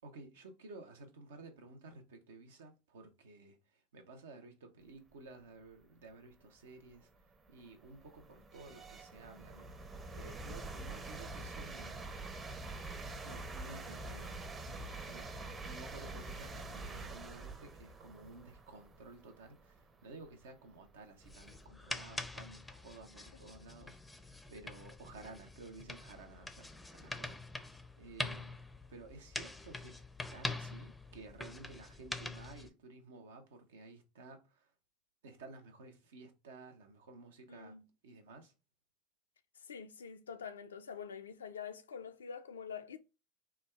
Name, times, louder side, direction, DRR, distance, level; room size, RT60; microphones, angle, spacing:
voice 1, 0.0-12.2 13.2-15.3 15.6-28.6 28.9-30.0 30.3-34.7 35.2-37.8 38.0-38.5, right 3 dB, 80° right, 0.7 m, -54 dB
sound 1, 6.1-6.2 6.8-21.6, right 2 dB, 25° right, 0.7 m, -46 dB
sound 2, 21.2-32.7, left 2 dB, 10° left, 0.5 m, -45 dB
voice 2, 37.5-37.8 39.6-43.0, left 7 dB, 85° left, 0.4 m, -46 dB
3.4 x 2.3 x 3.1 m
hypercardioid pair, 80°, 0 cm